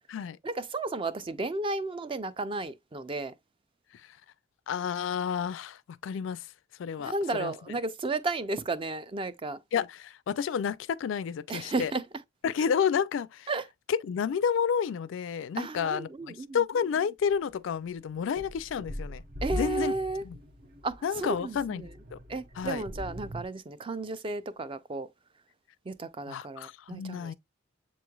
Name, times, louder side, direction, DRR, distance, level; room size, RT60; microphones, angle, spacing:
voice 1, 0.4-3.3 7.0-9.6 11.5-12.0 13.5-13.6 15.6-16.6 19.4-20.2 20.8-21.9 22.3-25.1 25.9-27.3, right 3 dB, 25° right, 0.4 m, -33 dB
voice 2, 4.7-6.5 6.8-7.5 9.7-11.9 12.4-13.5 13.9-19.2 19.5-19.9 20.2-20.4 21.0-21.8 22.1-22.2 22.6-22.8 26.3-27.3, left 7 dB, 70° left, 0.3 m, -30 dB
sound 1, 17.2-17.3 17.9-23.5, left 1 dB, 50° right, 0.8 m, -40 dB
7.5 x 3.1 x 2.2 m
head